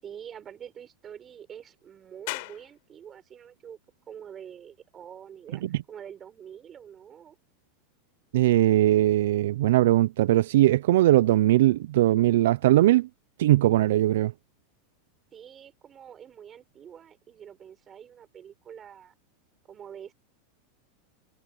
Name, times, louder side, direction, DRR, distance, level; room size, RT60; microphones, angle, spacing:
voice 1, 0.0-3.8 4.1-7.4 15.3-19.1 19.7-20.1, right 8 dB, 30° right, 6.7 m, -46 dB
sound 1, 2.3-15.4, left 26 dB, 65° left, 4.8 m, -49 dB
voice 2, 8.3-13.1 13.4-14.3, right 15 dB, 75° right, 0.5 m, -20 dB
supercardioid pair, 125°, 0 cm